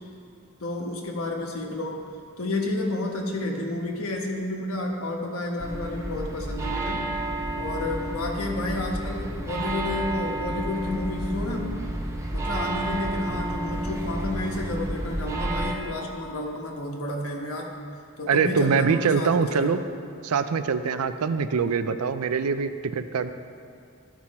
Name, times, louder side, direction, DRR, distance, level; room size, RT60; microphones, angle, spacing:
voice 1, 0.6-2.1 2.4-7.1 7.6-11.8 12.3-17.7 18.2-19.7, left 2 dB, 75° left, 0 dB, 1.3 m, -31 dB
sound 1, 5.6-15.8, right 1 dB, 15° right, 0.7 m, -31 dB
voice 2, 18.3-19.8 20.2-23.3, right 5 dB, 90° right, 11 dB, 0.5 m, -24 dB
14.0 x 6.1 x 4.2 m, 2.4 s
head